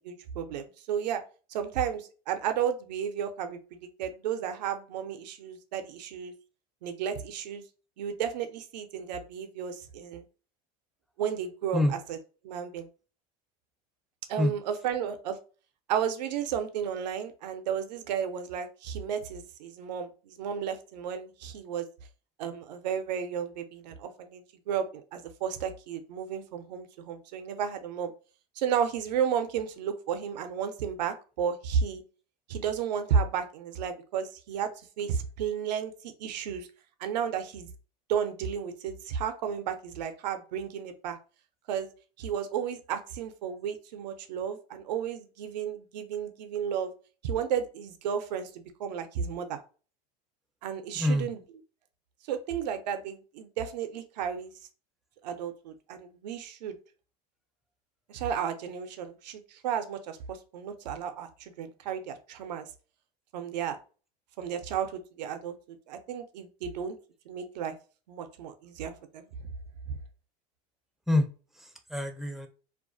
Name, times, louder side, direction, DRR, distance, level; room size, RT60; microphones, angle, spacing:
voice 1, 0.0-1.2 1.5-6.3 6.8-7.6 8.0-10.2 11.2-11.8 12.1-12.2 12.4-12.9 14.3-15.4 15.9-21.9 22.4-28.1 28.6-32.0 32.5-34.7 35.0-36.7 37.0-37.7 38.1-41.2 41.7-41.9 42.2-46.9 47.2-49.6 50.6-51.4 52.3-54.5 55.2-56.8 58.1-62.7 63.3-63.8 64.4-67.0 67.3-67.8 68.1-69.2 69.9-70.0, right 8 dB, 85° right, 8 dB, 0.4 m, -33 dB
voice 2, 50.9-51.3 71.1-71.3 71.6-72.5, left 1 dB, ahead, 5 dB, 0.4 m, -26 dB
2.3 x 2.2 x 2.5 m, 0.36 s
hypercardioid pair, 95°, 21 cm